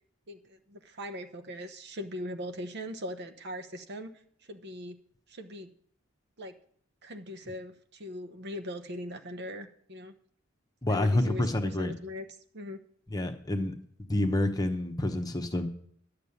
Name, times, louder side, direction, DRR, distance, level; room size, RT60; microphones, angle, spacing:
voice 1, 0.3-4.1 4.5-5.0 5.3-5.7 6.4-6.5 7.0-10.1 10.9-11.5 11.8-12.2 12.5-12.8, left 1 dB, 55° right, 7 dB, 0.9 m, -40 dB
voice 2, 10.8-11.9 13.1-13.7 14.0-15.7, left 1 dB, 20° left, 5 dB, 1.0 m, -28 dB
11.5 x 6.7 x 7.0 m, 0.63 s
head